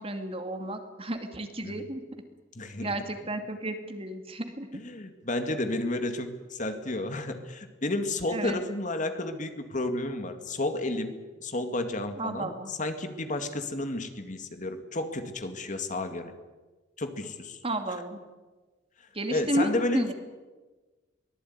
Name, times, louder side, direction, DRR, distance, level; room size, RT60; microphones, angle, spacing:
voice 1, 0.0-2.0 2.8-4.7 8.3-8.6 12.2-12.7 17.6-18.2 19.1-20.1, right 1 dB, 30° right, 6 dB, 2.5 m, -32 dB
voice 2, 2.5-2.9 4.7-16.3 17.0-17.6 19.3-20.1, left 2 dB, 40° left, 7 dB, 2.2 m, -32 dB
23.5 x 18.5 x 9.7 m, 1.3 s
head